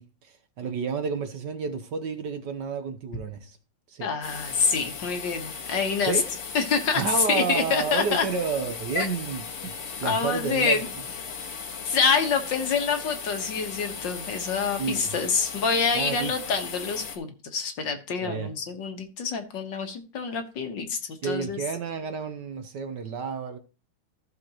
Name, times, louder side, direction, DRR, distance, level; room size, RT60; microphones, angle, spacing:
voice 1, 0.0-3.6 3.9-4.1 6.1-6.2 7.0-10.7 14.8-15.1 15.9-16.3 18.2-18.5 21.2-23.6, right 5 dB, 60° right, 1.4 m, -31 dB
voice 2, 4.0-6.2 6.5-7.0 7.3-8.3 9.0-9.1 10.1-10.9 11.8-21.6, left 5 dB, 60° left, 1.9 m, -26 dB
sound 1, 4.2-17.2, left 6 dB, 90° left, 2.3 m, -37 dB
14.5 x 6.7 x 2.9 m
omnidirectional pair, 2.4 m